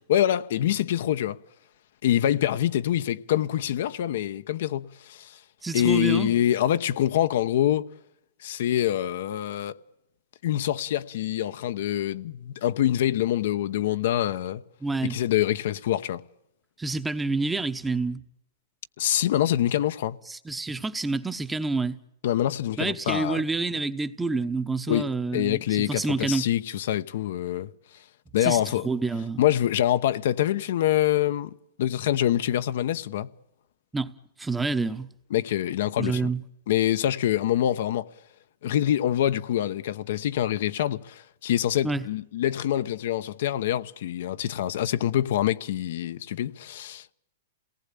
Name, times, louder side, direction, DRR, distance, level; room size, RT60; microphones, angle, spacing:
voice 1, 0.1-1.4 2.0-5.4 5.7-7.8 8.4-9.8 10.4-14.6 15.0-16.2 19.0-20.2 22.2-23.4 24.9-27.7 28.3-28.8 29.4-31.5 31.8-33.3 35.3-36.3 36.7-38.1 38.6-47.1, left 12 dB, 60° left, 0.9 m, -25 dB
voice 2, 5.6-6.4 14.8-15.2 16.8-18.2 20.3-22.0 22.8-26.5 28.4-29.4 33.9-34.1 34.4-35.1 36.0-36.4 41.8-42.0, right 3 dB, 5° right, 1.0 m, -28 dB
28.5 x 19.0 x 8.4 m
hypercardioid pair, 155°, 0 cm